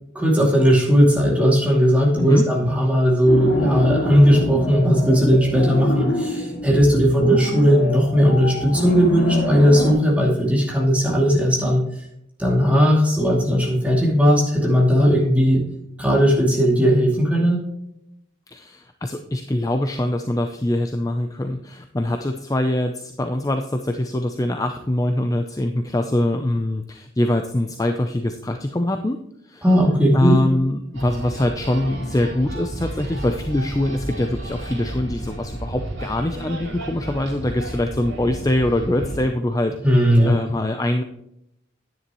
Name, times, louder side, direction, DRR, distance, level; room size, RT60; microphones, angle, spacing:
voice 1, 0.1-11.8 12.4-15.6 16.0-17.6 29.6-30.4 39.8-40.4, equal, 5° right, -2 dB, 2.5 m, -17 dB
sound 1, 3.3-9.9, left 1 dB, 65° left, 3.4 m, -27 dB
voice 2, 6.9-7.4 18.5-29.2 29.5-29.6 30.1-39.7 40.2-41.0, left 1 dB, 15° left, 6 dB, 0.5 m, -23 dB
sound 2, 30.9-39.3, right 1 dB, 70° right, 3.7 m, -32 dB
10.5 x 9.8 x 3.1 m, 0.78 s
head